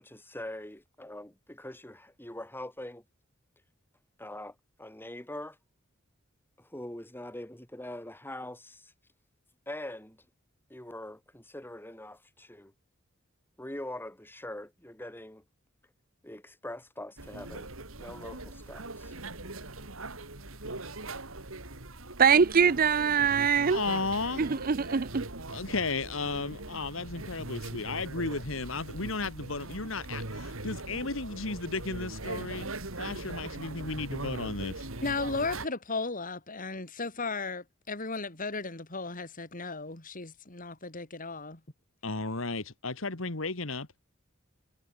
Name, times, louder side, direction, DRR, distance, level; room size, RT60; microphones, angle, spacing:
voice 1, 0.0-3.0 4.2-5.6 6.6-8.9 9.7-10.2 10.7-12.7 13.6-15.4 16.2-19.1, left 1 dB, 10° left, 5.1 m, -43 dB
sound 1, 17.2-35.7, right 2 dB, 80° right, 4.4 m, -41 dB
voice 2, 22.2-23.8 24.4-25.3, right 6 dB, 45° right, 0.6 m, -23 dB
voice 3, 23.7-24.4 25.5-32.7 33.0-34.9 42.0-43.9, left 3 dB, 70° left, 2.1 m, -34 dB
voice 4, 35.0-41.6, left 3 dB, 40° left, 3.3 m, -35 dB
head